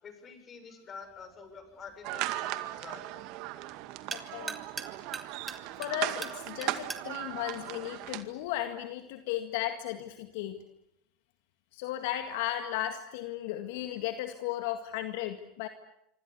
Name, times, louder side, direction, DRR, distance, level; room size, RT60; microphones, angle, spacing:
voice 1, 0.0-3.2, left 5 dB, 30° left, 8 dB, 7.1 m, -48 dB
sound 1, 1.0-8.6, right 3 dB, 15° right, 3.0 m, -45 dB
sound 2, 2.0-8.2, right 16 dB, 55° right, 2.0 m, -37 dB
voice 2, 4.1-4.6 5.4-10.6 11.7-15.7, left 12 dB, 65° left, 7 dB, 1.9 m, -35 dB
26.0 x 25.5 x 8.4 m, 0.80 s
hypercardioid pair, 90°, 0 cm